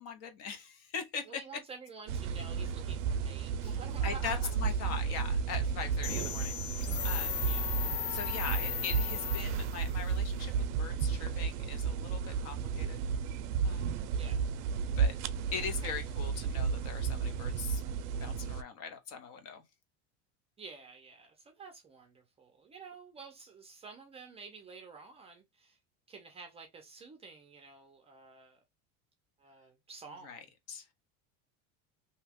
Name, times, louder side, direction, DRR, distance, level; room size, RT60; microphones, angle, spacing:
voice 1, 0.0-1.4 3.6-3.7 4.0-7.5 8.1-13.0 13.6-14.1 15.0-15.1 15.5-17.8 18.2-19.6 30.2-30.4 30.7-30.9, left 6 dB, 50° left, 0.8 m, -41 dB
voice 2, 1.3-4.5 6.2-6.6 7.4-7.7 14.1-14.5 15.6-15.9 20.6-25.8 26.1-28.6 29.4-30.5, right 4 dB, 20° right, 0.5 m, -50 dB
sound 1, 2.1-18.6, right 6 dB, 90° right, 0.5 m, -33 dB
sound 2, 6.0-9.9, left 9 dB, 90° left, 0.8 m, -37 dB
2.8 x 2.2 x 3.4 m
cardioid pair, 160°, 34 cm